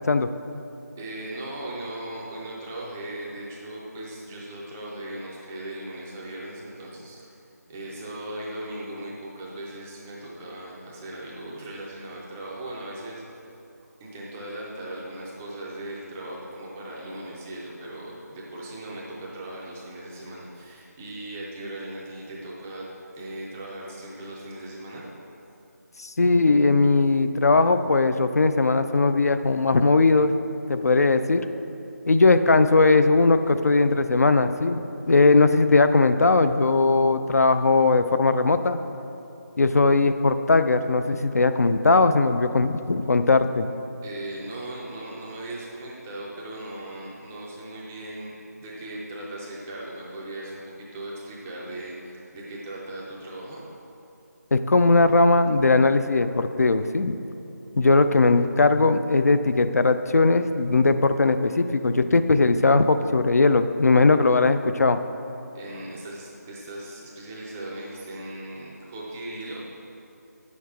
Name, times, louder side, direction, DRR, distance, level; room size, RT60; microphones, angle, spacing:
voice 1, 0.9-7.3 7.7-13.2 14.0-22.9 23.2-25.1 44.0-53.6 65.5-69.7, right 1 dB, 5° right, -5 dB, 0.4 m, -38 dB
voice 2, 26.0-30.3 30.7-31.4 32.1-38.8 39.6-43.7 54.5-57.1 57.8-65.0, left 3 dB, 65° left, 9 dB, 0.4 m, -19 dB
9.3 x 6.4 x 3.4 m, 2.9 s
figure-of-eight pair, 165°, 9 cm